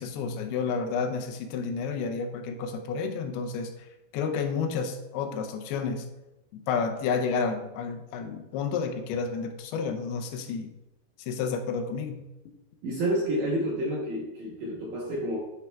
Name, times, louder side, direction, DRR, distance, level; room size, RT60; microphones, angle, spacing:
voice 1, 0.0-3.9 4.1-6.1 6.7-10.7 11.2-12.2, left 5 dB, 85° left, 5 dB, 2.7 m, -30 dB
voice 2, 12.8-15.4, right 1 dB, 70° right, -4 dB, 1.9 m, -29 dB
9.0 x 5.7 x 2.3 m, 1.0 s
omnidirectional pair, 4.5 m